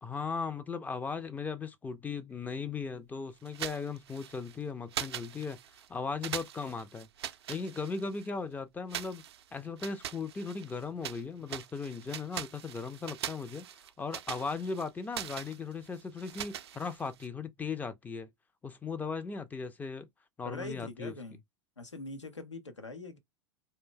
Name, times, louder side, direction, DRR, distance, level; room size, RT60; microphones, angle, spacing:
voice 1, 0.0-5.6 5.9-7.1 7.5-9.2 9.5-18.3 18.6-20.1 20.4-21.1, left 4 dB, 10° left, 0.4 m, -37 dB
sound 1, 3.5-4.6 4.9-5.9 6.2-8.3 8.9-11.2 11.5-17.3, right 10 dB, 65° right, 0.4 m, -42 dB
voice 2, 20.4-21.4 21.8-23.2, left 2 dB, 85° left, 0.7 m, -42 dB
2.5 x 2.1 x 3.7 m
figure-of-eight pair, 90°, 15 cm